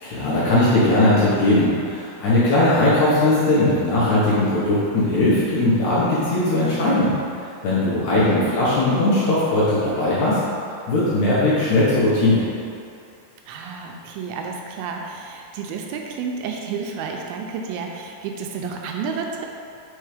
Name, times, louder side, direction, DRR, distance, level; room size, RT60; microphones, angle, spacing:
voice 1, 0.0-7.1 7.6-10.4 10.9-12.4, left 1 dB, 70° left, -9 dB, 1.9 m, -19 dB
voice 2, 8.2-8.6 13.5-19.5, right 5 dB, 85° right, 2 dB, 2.4 m, -31 dB
5.3 x 4.5 x 4.9 m, 2.5 s
omnidirectional pair, 4.5 m